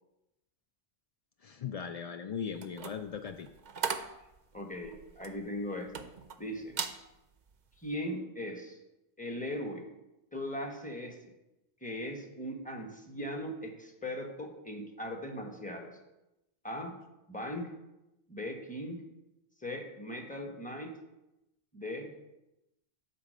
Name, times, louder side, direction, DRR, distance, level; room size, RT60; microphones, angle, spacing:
voice 1, 1.4-3.5, left 7 dB, 70° left, 7 dB, 0.3 m, -38 dB
sound 1, 2.5-6.4 6.7-7.0 7.5-7.7, right 6 dB, 50° right, 0.6 m, -38 dB
voice 2, 4.5-6.1 6.4-6.8 7.8-8.8 9.2-9.9 10.3-11.3 11.8-15.9 16.6-16.9 17.3-17.7 18.3-19.0 19.6-20.9 21.7-22.3, left 1 dB, 5° left, 2 dB, 1.1 m, -39 dB
9.9 x 4.0 x 6.5 m, 0.93 s
omnidirectional pair, 1.2 m